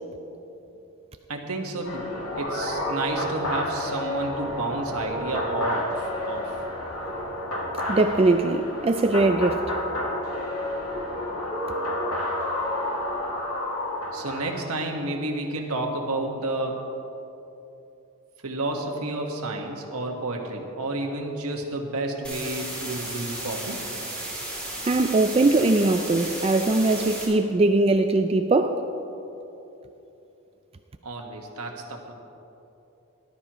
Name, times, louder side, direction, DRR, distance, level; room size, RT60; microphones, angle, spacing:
voice 1, 1.3-6.5 14.1-16.8 18.4-23.8 31.0-32.1, right 2 dB, 80° right, 2 dB, 1.6 m, -30 dB
sound 1, 1.8-14.8, left 1 dB, 85° left, 2.4 m, -30 dB
voice 2, 7.9-9.6 24.9-28.8, right 2 dB, 25° right, 7 dB, 0.3 m, -21 dB
sound 2, 22.2-27.2, right 1 dB, 5° left, 3.0 m, -34 dB
19.0 x 12.5 x 3.1 m, 3.0 s
head